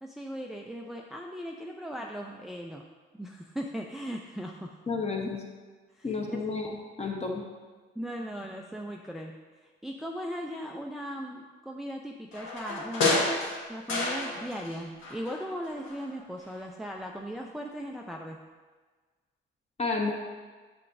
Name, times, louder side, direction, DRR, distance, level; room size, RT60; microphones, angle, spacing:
voice 1, 0.0-2.8 3.2-4.7 5.9-6.4 8.0-9.3 9.6-13.2 13.7-18.4, equal, ahead, 0 dB, 0.5 m, -38 dB
voice 2, 4.9-5.4 6.0-7.4 19.8-20.1, left 4 dB, 30° left, 1 dB, 1.2 m, -31 dB
sound 1, 12.3-14.8 15.0-16.1 16.4-16.5, left 2 dB, 70° left, 1.6 m, -30 dB
7.5 x 6.0 x 2.6 m, 1.4 s
supercardioid pair, 80°, 21 cm